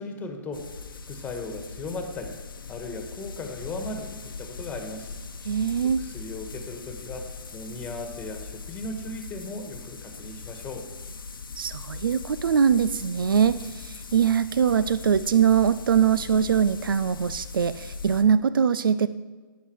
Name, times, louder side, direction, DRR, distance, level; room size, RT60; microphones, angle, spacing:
voice 1, 0.0-2.4 2.7-5.2 6.0-10.9, left 2 dB, 15° left, 5 dB, 1.6 m, -37 dB
sound 1, 0.5-18.2, left 4 dB, 80° left, 1.0 m, -40 dB
voice 2, 5.5-6.0 11.6-19.1, right 7 dB, 80° right, 15 dB, 0.4 m, -22 dB
11.5 x 9.2 x 4.7 m, 1.4 s
hypercardioid pair, 130°, 11 cm